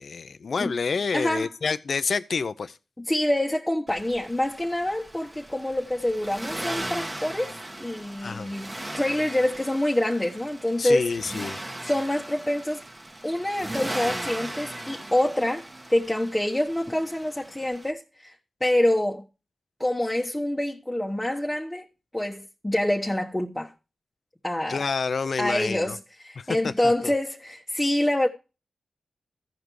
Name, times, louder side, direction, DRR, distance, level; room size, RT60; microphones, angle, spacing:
voice 1, 0.0-2.8 8.2-8.5 10.8-11.6 24.7-26.0 26.4-27.1, left 5 dB, 65° left, 0.6 m, -28 dB
voice 2, 1.1-1.5 3.0-7.5 7.8-12.8 13.2-18.3 18.6-19.2 19.8-21.8 22.1-23.7 24.4-24.8 25.4-28.3, left 1 dB, 15° left, 1.3 m, -26 dB
Accelerating revving vroom, 3.9-17.9, right 1 dB, 25° right, 1.4 m, -38 dB
14.5 x 5.2 x 4.6 m
cardioid pair, 45°, 0 cm